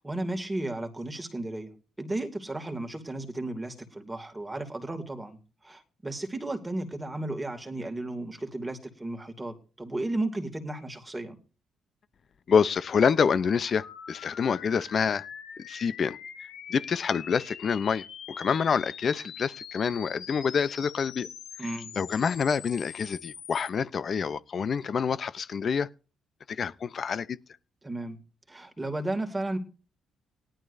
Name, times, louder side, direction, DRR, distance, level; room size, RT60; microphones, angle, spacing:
voice 1, 0.0-1.7 2.0-5.4 5.6-11.4 21.6-21.9 27.8-28.2 28.5-29.6, right 2 dB, 15° right, 2.6 m, -34 dB
voice 2, 12.5-15.2 15.6-21.3 21.6-21.7 22.0-25.9 26.5-27.4, left 6 dB, 50° left, 0.7 m, -27 dB
sound 1, 13.8-23.7, left 8 dB, 75° left, 1.9 m, -44 dB
18.0 x 11.5 x 2.7 m
cardioid pair, 90°, 0 cm